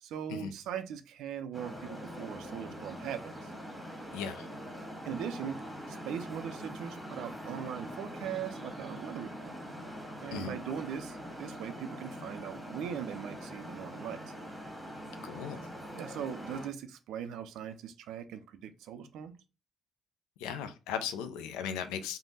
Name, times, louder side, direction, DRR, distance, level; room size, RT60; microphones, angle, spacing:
voice 1, 0.0-3.5 5.0-5.6 5.9-9.5 10.2-14.3 15.9-19.3, right 8 dB, 65° right, 0.3 m, -40 dB
Traffic noise roadway noise, 1.5-16.7, equal, 5° right, 1.3 m, -43 dB
voice 2, 4.1-4.5 10.3-10.5 15.2-15.6 20.4-22.2, left 7 dB, 70° left, 0.3 m, -37 dB
3.3 x 2.1 x 2.7 m
figure-of-eight pair, 45°, 0 cm